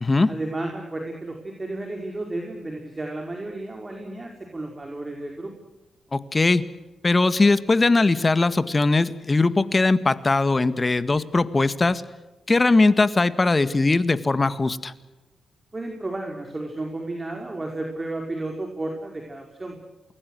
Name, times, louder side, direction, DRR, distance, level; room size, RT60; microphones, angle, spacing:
voice 1, 0.3-5.5 15.7-19.8, right 2 dB, 30° right, 2 dB, 5.0 m, -32 dB
voice 2, 6.1-6.6 7.0-12.0 12.5-14.9, left 3 dB, 35° left, 14 dB, 1.8 m, -20 dB
29.0 x 22.0 x 6.4 m, 1.1 s
hypercardioid pair, 40°, 0 cm